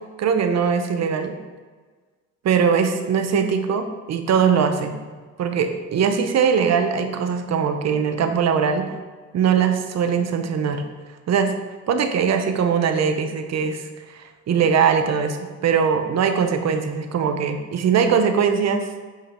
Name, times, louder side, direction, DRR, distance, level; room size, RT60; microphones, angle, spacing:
voice 1, 0.2-1.4 2.4-5.0 5.4-8.9 9.3-10.8 11.3-11.5 11.9-18.9, right 6 dB, 60° right, 6 dB, 0.9 m, -21 dB
7.7 x 5.3 x 3.7 m, 1.4 s
cardioid pair, 90°, 30 cm